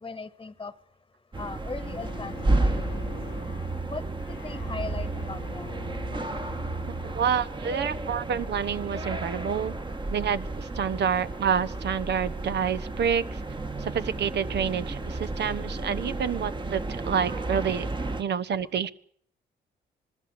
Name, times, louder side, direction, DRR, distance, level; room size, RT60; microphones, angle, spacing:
voice 1, 0.0-0.7 1.4-3.1 3.9-5.8, left 4 dB, 20° left, 14 dB, 1.3 m, -39 dB
sound 1, 1.3-18.2, right 2 dB, 25° right, 1.6 m, -32 dB
Bowed string instrument, 1.8-8.0, left 8 dB, 80° left, 1.5 m, -46 dB
voice 2, 7.0-9.7 10.1-13.4 13.8-18.9, right 7 dB, 60° right, 13 dB, 1.2 m, -28 dB
26.0 x 20.0 x 7.8 m, 0.63 s
cardioid pair, 90°, 20 cm